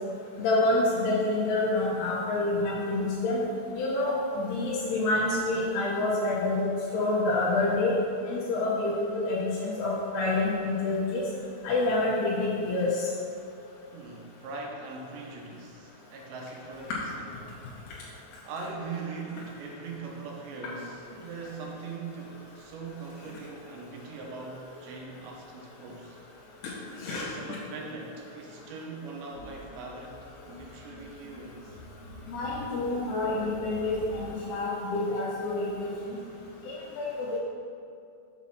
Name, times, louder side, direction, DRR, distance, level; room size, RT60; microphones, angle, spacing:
voice 1, 0.4-3.4 3.7-6.6 6.9-8.0 8.3-11.2 11.6-13.1 27.0-27.3 32.3-36.2 36.7-37.4, left 2 dB, 80° left, -6 dB, 2.4 m, -27 dB
voice 2, 13.9-17.3 17.6-17.9 18.4-26.2 27.1-30.2 30.4-31.8, right 3 dB, 80° right, -1 dB, 2.8 m, -41 dB
sound 1, 29.3-34.3, left 1 dB, 55° left, 1.3 m, -48 dB
7.1 x 4.2 x 5.8 m, 2.6 s
omnidirectional pair, 5.4 m